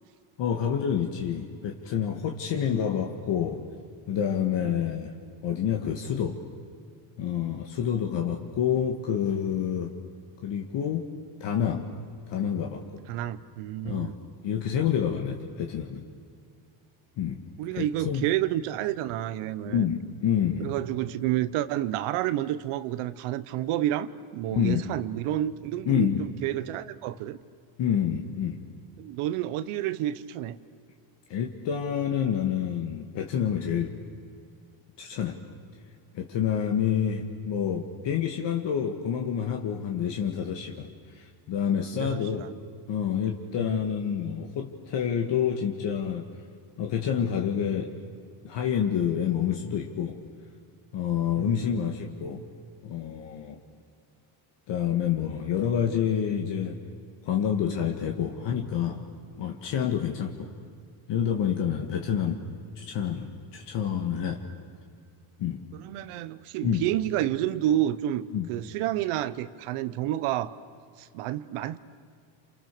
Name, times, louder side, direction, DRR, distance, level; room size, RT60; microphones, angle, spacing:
voice 1, 0.4-3.6 4.1-5.1 5.4-6.4 7.2-9.9 10.4-11.0 11.4-11.9 12.3-12.8 13.8-14.1 14.4-16.0 17.2-17.4 17.7-18.3 19.7-20.7 24.5-24.8 25.9-26.2 27.8-28.6 31.3-33.9 35.0-35.4 36.1-40.9 41.1-42.5 42.9-46.2 46.8-47.9 48.4-50.2 50.9-52.4 52.8-53.6 54.7-56.8 57.2-59.0 59.4-60.5 61.1-62.4 62.8-64.4 65.4-65.6 66.6-66.8 68.3-68.5, left 8 dB, 60° left, 2 dB, 2.0 m, -28 dB
voice 2, 13.1-14.1 17.6-19.9 20.6-27.4 29.0-30.6 41.9-42.5 43.6-43.8 51.4-51.9 65.7-70.5 71.0-71.8, right 13 dB, 85° right, 13 dB, 1.2 m, -30 dB
29.0 x 28.5 x 6.9 m, 2.3 s
cardioid pair, 135°, 49 cm